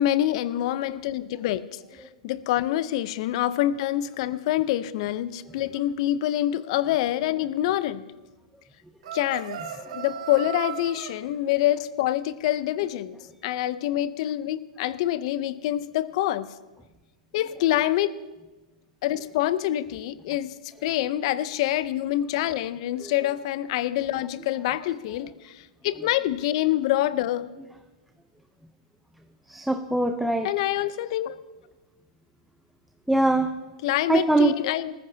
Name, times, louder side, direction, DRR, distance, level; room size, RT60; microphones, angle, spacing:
voice 1, 0.0-1.8 2.2-8.0 9.1-9.6 9.9-13.2 13.4-16.5 17.3-18.1 19.0-20.5 20.8-27.5 30.4-31.4 33.8-34.9, left 13 dB, 55° left, 16 dB, 0.7 m, -26 dB
sound 1, 9.0-11.1, right 9 dB, 70° right, 1.9 m, -36 dB
voice 2, 29.5-30.5 33.1-33.5 34.1-34.5, right 2 dB, ahead, 6 dB, 0.7 m, -22 dB
19.5 x 14.5 x 2.8 m, 1.2 s
hypercardioid pair, 120°, 4 cm